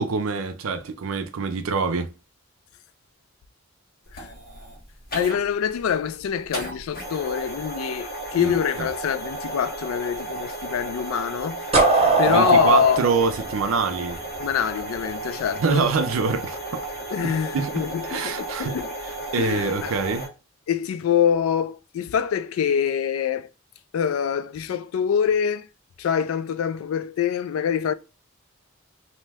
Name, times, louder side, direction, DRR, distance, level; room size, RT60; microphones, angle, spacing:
voice 1, 0.0-2.1 8.4-8.5 12.3-14.2 15.6-16.8 17.2-17.7 18.0-18.8 19.3-20.3, right 5 dB, 80° right, 0.5 m, -25 dB
sound 1, 4.1-20.3, right 2 dB, 45° left, 1.0 m, -34 dB
voice 2, 5.1-11.7 12.2-13.1 14.4-15.9 17.1-18.9 19.4-20.0 20.7-23.5 23.9-25.7 26.0-27.9, left 8 dB, 80° left, 0.3 m, -25 dB
sound 2, 11.7-14.6, right 3 dB, 30° right, 0.8 m, -21 dB
2.7 x 2.1 x 3.3 m
head